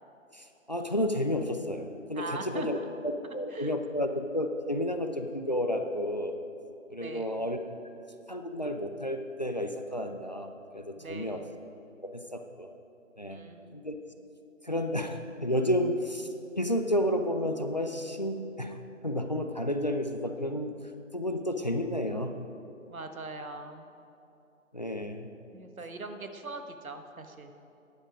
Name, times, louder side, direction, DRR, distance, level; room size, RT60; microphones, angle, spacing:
voice 1, 0.3-2.8 3.0-6.4 6.9-7.6 8.3-11.4 12.0-12.7 13.2-13.4 13.7-14.0 14.6-16.3 16.6-18.8 19.0-20.7 21.1-22.3 24.7-25.3, left 1 dB, 35° left, 6 dB, 0.4 m, -31 dB
voice 2, 2.1-2.9 3.5-4.1 7.0-7.4 11.0-11.5 13.3-13.7 22.9-23.9 25.5-27.5, right 3 dB, 90° right, 6 dB, 1.3 m, -41 dB
12.0 x 10.0 x 5.0 m, 2.8 s
figure-of-eight pair, 160°, 41 cm